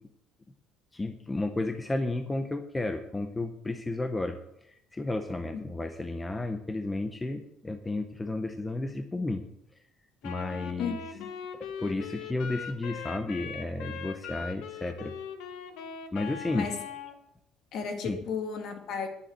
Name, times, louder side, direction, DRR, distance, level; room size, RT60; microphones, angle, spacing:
voice 1, 0.9-4.4 4.7-9.4 10.2-10.9 11.6-15.1 16.1-16.7 18.0-18.3, left 2 dB, 10° left, 7 dB, 0.6 m, -32 dB
Wind instrument woodwind instrument, 10.2-17.2, left 7 dB, 75° left, 1.3 m, -40 dB
voice 2, 10.8-11.3 16.5-16.8 17.7-19.1, left 5 dB, 45° left, 5 dB, 1.9 m, -34 dB
10.0 x 7.1 x 7.9 m, 0.80 s
cardioid pair, 165°, 0 cm